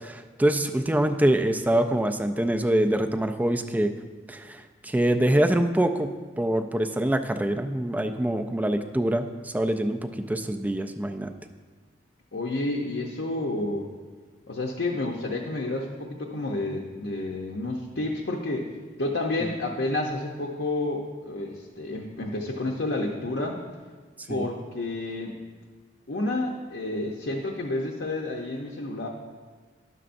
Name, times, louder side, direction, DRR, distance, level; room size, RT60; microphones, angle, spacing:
voice 1, 0.0-3.9 4.3-11.3 19.4-19.5 24.3-24.5, right 1 dB, 10° right, 7 dB, 0.3 m, -25 dB
voice 2, 12.3-13.9 14.5-18.7 19.0-23.6 24.3-25.4 26.1-29.1, left 2 dB, 65° left, 0 dB, 0.7 m, -30 dB
10.5 x 6.7 x 2.6 m, 1.4 s
head